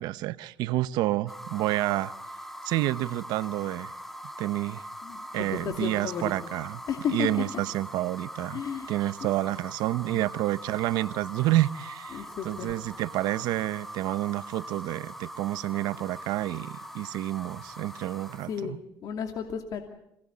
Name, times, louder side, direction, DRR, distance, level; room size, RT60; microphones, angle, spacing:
voice 1, 0.0-2.1 2.6-3.9 4.4-4.8 5.3-6.8 7.1-8.6 8.9-18.8, right 16 dB, 80° right, 0.8 m, -29 dB
sound 1, 1.3-18.6, equal, 5° left, 2.3 m, -42 dB
voice 2, 5.0-6.3 6.9-7.3 8.5-8.9 9.2-9.3 10.1-10.2 12.1-12.7 18.5-19.8, left 8 dB, 60° left, 2.6 m, -33 dB
27.0 x 19.0 x 8.4 m
cardioid pair, 100°, 7 cm